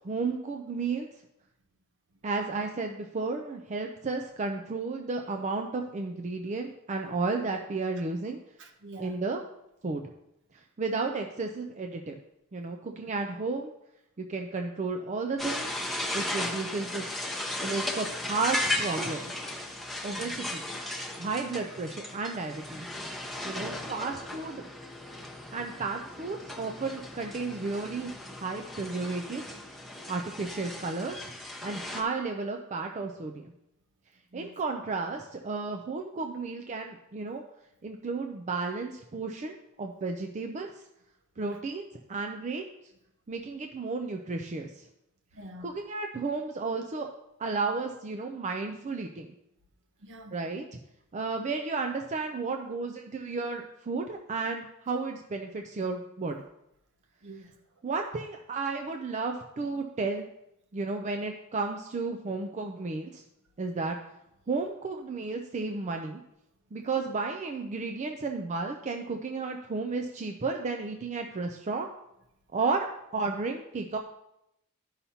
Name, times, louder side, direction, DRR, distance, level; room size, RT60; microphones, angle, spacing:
voice 1, 0.0-1.1 2.2-8.4 9.0-9.4 9.8-10.0 10.5-12.2 12.5-13.7 14.2-15.7 16.1-17.1 17.6-19.4 20.0-20.6 21.2-22.9 23.4-24.6 25.5-29.4 30.1-31.3 31.6-33.5 34.3-37.4 37.8-40.7 41.4-42.6 43.3-44.8 45.6-47.1 47.4-49.3 50.3-50.6 51.1-56.4 57.8-60.2 60.7-63.2 63.6-64.0 64.5-66.2 66.7-71.9 72.5-72.9 73.1-74.0, right 3 dB, 35° right, 0.4 m, -33 dB
voice 2, 8.6-9.2 12.9-13.0 20.1-20.4 23.5-23.8 34.3-34.5 45.3-45.7 50.0-50.4 57.2-57.6, right 1 dB, 60° right, 0.9 m, -47 dB
sound 1, 15.4-32.0, left 1 dB, ahead, 0.8 m, -36 dB
11.5 x 5.6 x 2.8 m
head